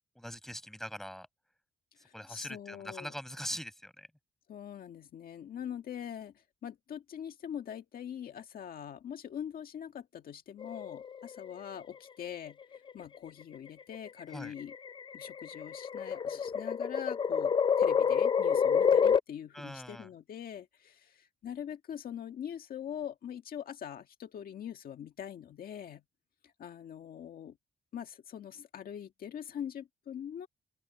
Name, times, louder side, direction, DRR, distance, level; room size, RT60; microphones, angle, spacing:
voice 1, 0.2-1.3 2.1-4.1 14.3-14.5 19.5-20.1, equal, ahead, 5.3 m, -42 dB
voice 2, 2.0-3.1 4.5-14.7 15.1-26.0 26.4-27.6 27.9-30.5, left 9 dB, 65° left, 1.7 m, -43 dB
sound 1, 10.6-11.4 12.6-13.0 13.9-19.2, left 7 dB, 30° left, 0.5 m, -28 dB
open air
cardioid pair, 135°, 16 cm